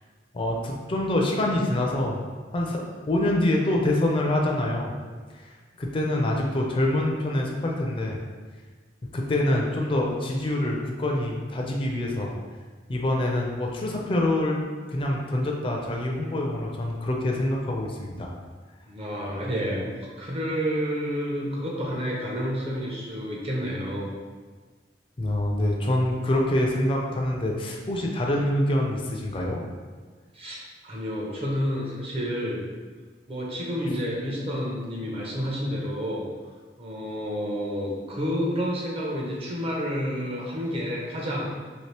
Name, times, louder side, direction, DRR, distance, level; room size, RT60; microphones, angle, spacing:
voice 1, 0.3-2.2 2.5-5.0 5.3-5.5 5.8-8.2 9.1-12.3 12.9-18.3 25.2-29.6, left 1 dB, 30° left, 0 dB, 0.4 m, -25 dB
voice 2, 18.9-19.9 20.2-24.1 30.3-32.6 33.3-36.2 36.8-41.5, equal, 35° right, -3 dB, 0.7 m, -29 dB
2.8 x 2.8 x 3.2 m, 1.4 s
head